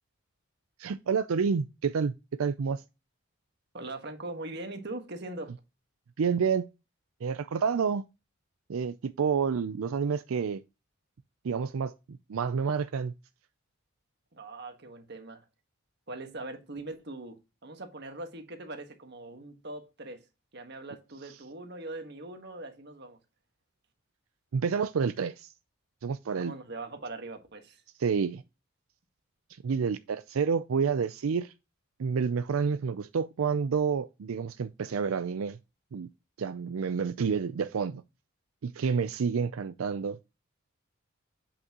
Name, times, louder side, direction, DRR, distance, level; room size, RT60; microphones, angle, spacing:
voice 1, 0.8-2.8 6.2-6.7 7.2-8.0 8.7-10.6 11.4-13.1 24.5-25.5 26.0-26.5 28.0-28.4 29.5-31.5 32.0-35.6 35.9-36.1 36.4-38.0 38.6-40.2, right 6 dB, 90° right, 0.4 m, -29 dB
voice 2, 3.7-5.5 14.3-15.4 16.1-20.2 20.5-23.2 26.3-27.8, right 2 dB, 55° right, 1.5 m, -41 dB
8.1 x 5.9 x 2.9 m
head